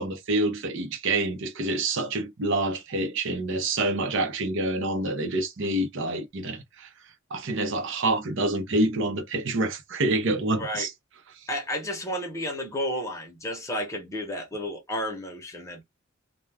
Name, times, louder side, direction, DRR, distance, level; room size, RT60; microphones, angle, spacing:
voice 1, 0.0-6.9 7.3-10.9, right 2 dB, 65° right, 0.7 m, -27 dB
voice 2, 11.5-15.8, equal, 15° left, 0.8 m, -32 dB
2.3 x 2.2 x 3.3 m
head